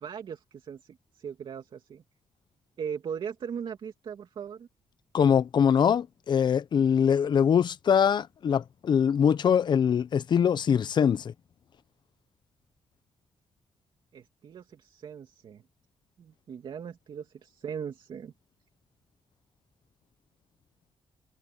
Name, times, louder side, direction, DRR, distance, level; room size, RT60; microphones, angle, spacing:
voice 1, 0.0-2.0 2.8-4.7 14.1-15.6 16.2-18.3, right 7 dB, 60° right, 2.8 m, -39 dB
voice 2, 5.1-11.3, left 7 dB, 55° left, 0.7 m, -23 dB
cardioid pair, 110°, 9 cm